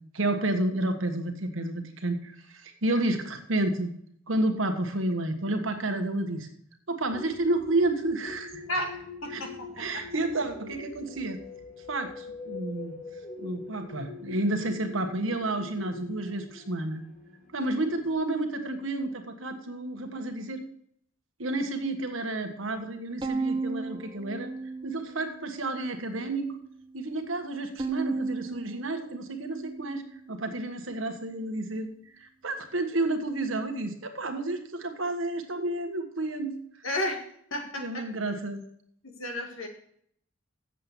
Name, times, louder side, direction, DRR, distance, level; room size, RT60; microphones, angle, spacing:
voice 1, 0.0-4.0 4.3-6.5 6.9-8.6 9.3-9.4 9.8-11.4 11.9-12.9 13.4-17.0 17.5-20.6 21.4-24.5 24.8-26.5 26.9-30.0 30.3-31.9 32.2-36.5 37.8-38.6, right 2 dB, 75° right, 6 dB, 1.5 m, -30 dB
sound 1, 7.1-18.1, left 3 dB, 50° left, 4.5 m, -43 dB
voice 2, 9.2-10.1 36.8-37.2 37.5-38.1 39.0-39.7, left 1 dB, 80° left, 3 dB, 2.2 m, -32 dB
Bowed string instrument, 23.2-25.6 26.0-26.8 27.8-30.3, right 3 dB, 25° right, 0.6 m, -35 dB
7.8 x 7.6 x 7.1 m, 0.66 s
head